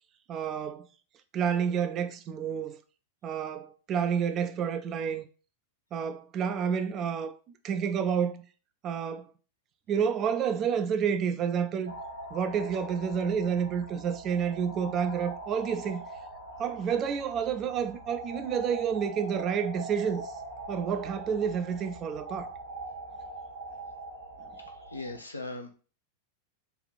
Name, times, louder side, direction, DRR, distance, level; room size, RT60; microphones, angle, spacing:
voice 1, 0.3-0.9 1.3-2.8 3.2-5.3 5.9-7.4 7.6-8.4 8.8-9.3 9.9-11.9 12.3-16.0 16.6-20.3 20.7-22.5, right 7 dB, 30° right, 0.4 m, -29 dB
sound 1, 11.9-25.2, right 2 dB, 80° right, 1.0 m, -42 dB
voice 2, 24.6-25.7, left 2 dB, 80° left, 0.6 m, -39 dB
3.4 x 2.5 x 4.0 m
figure-of-eight pair, 90°, 0 cm